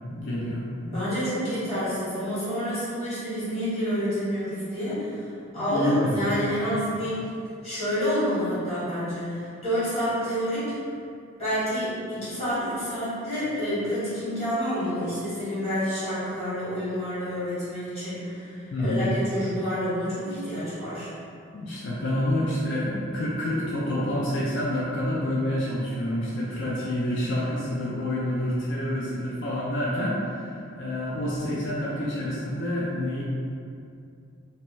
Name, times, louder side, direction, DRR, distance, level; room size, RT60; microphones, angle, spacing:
voice 1, 0.1-1.0 5.5-6.2 18.7-19.1 21.5-33.2, left 1 dB, 60° left, -6 dB, 0.4 m, -28 dB
voice 2, 0.9-5.3 5.5-7.2 7.6-10.7 11.4-21.1, equal, 30° left, -13 dB, 1.4 m, -28 dB
2.8 x 2.2 x 3.0 m, 2.5 s
head